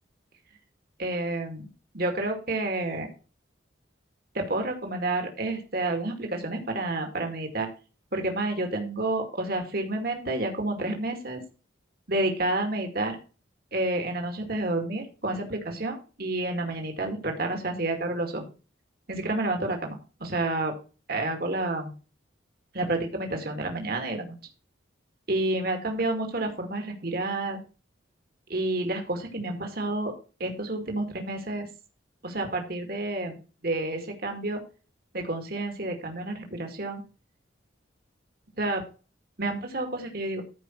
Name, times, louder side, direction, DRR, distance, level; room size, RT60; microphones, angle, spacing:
voice 1, 1.0-1.7 1.9-3.1 4.3-7.7 8.1-11.4 12.1-13.2 13.7-18.5 19.1-20.7 21.1-21.9 22.7-24.4 25.3-27.6 28.5-30.1 30.4-31.7 32.2-33.4 33.6-34.6 35.1-37.0 38.6-38.8 39.4-40.4, right 2 dB, 50° right, 3 dB, 2.2 m, -29 dB
13.0 x 5.2 x 4.5 m, 0.34 s
head